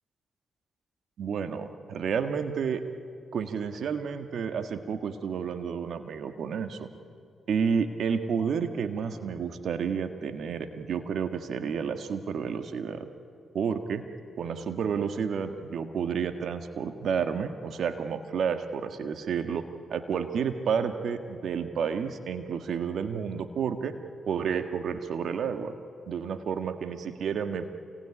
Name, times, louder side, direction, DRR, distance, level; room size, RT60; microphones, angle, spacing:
voice 1, 1.2-2.8 3.3-6.9 7.5-13.1 13.5-14.0 14.4-19.6 19.9-23.9 24.3-25.7 26.1-27.7, right 6 dB, 70° right, 8 dB, 1.7 m, -30 dB
28.0 x 21.0 x 10.0 m, 2.4 s
supercardioid pair, 50°, 0 cm